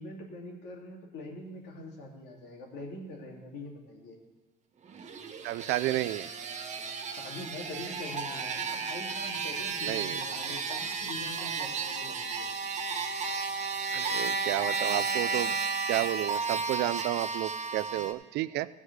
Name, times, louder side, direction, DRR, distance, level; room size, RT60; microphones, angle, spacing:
voice 1, 0.0-4.2 6.7-6.8 7.2-12.5, left 2 dB, 85° left, 0 dB, 2.5 m, -43 dB
sound 1, 4.9-18.1, right 4 dB, 45° right, 1.2 m, -33 dB
voice 2, 5.4-6.3 9.8-10.2 13.9-15.5 15.9-18.7, right 16 dB, 85° right, 16 dB, 0.4 m, -31 dB
14.5 x 4.9 x 7.9 m, 1.2 s
cardioid pair, 110°, 17 cm